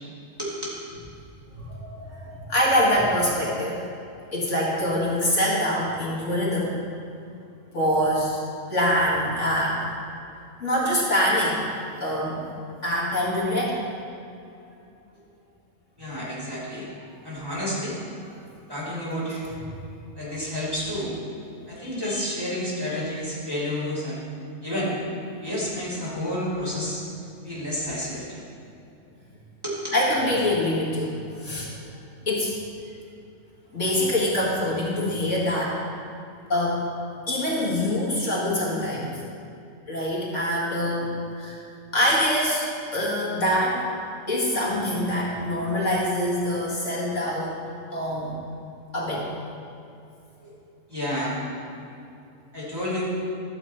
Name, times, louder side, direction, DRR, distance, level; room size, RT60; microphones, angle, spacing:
voice 1, 0.4-0.7 16.0-16.9 17.2-18.0 18.7-19.5 20.1-21.1 21.7-24.2 24.6-24.9 25.4-27.0 27.4-28.5 29.6-29.8 50.4-50.5 50.9-51.4 52.5-53.1, left 1 dB, 15° right, -9 dB, 2.7 m, -30 dB
voice 2, 1.5-3.8 4.3-6.8 7.7-8.4 8.7-9.8 10.6-11.6 12.0-12.4 12.8-13.8 18.9-19.0 26.1-26.2 29.9-31.7 32.3-32.6 33.7-35.8 36.5-39.1 39.9-41.6 41.9-43.8 44.3-47.6 47.9-48.4 48.9-49.3, left 1 dB, 60° left, -5 dB, 2.1 m, -24 dB
12.0 x 7.0 x 4.3 m, 2.6 s
omnidirectional pair, 1.4 m